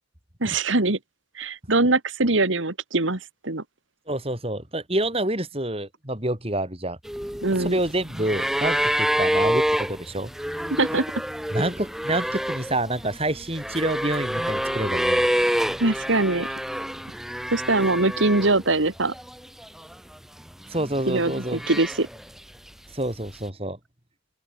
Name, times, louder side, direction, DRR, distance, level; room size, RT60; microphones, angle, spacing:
voice 1, 0.4-1.0 1.4-3.6 7.4-7.8 10.8-11.0 15.8-16.5 17.5-19.1 21.1-22.1, right 2 dB, 80° right, 2.1 m, -22 dB
voice 2, 4.1-7.0 7.6-10.3 10.9-11.0 11.5-15.2 20.7-21.6 22.9-23.8, right 1 dB, 30° right, 5.1 m, -27 dB
sound 1, 7.1-18.7 19.0-19.9 20.7-22.4 23.4-23.5, equal, ahead, 0.8 m, -27 dB
open air
head